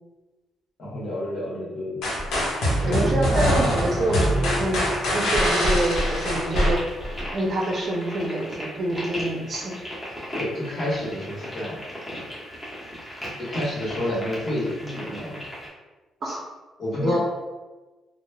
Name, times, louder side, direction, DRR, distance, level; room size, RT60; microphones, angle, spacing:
voice 1, 0.8-2.0 2.8-3.5 9.1-9.2 10.4-11.8 13.4-15.4 16.8-17.2, left 1 dB, 55° left, -7 dB, 1.2 m, -29 dB
sound 1, 2.0-7.3, equal, 80° left, 0.8 m, -23 dB
voice 2, 2.8-4.8 5.1-6.8 7.3-9.8 16.2-16.4 17.0-17.2, right 1 dB, 45° right, -1 dB, 0.5 m, -26 dB
sound 2, 4.2-15.7, equal, 15° left, 0.9 m, -37 dB
3.0 x 2.0 x 2.2 m, 1.2 s
cardioid pair, 90°, 0 cm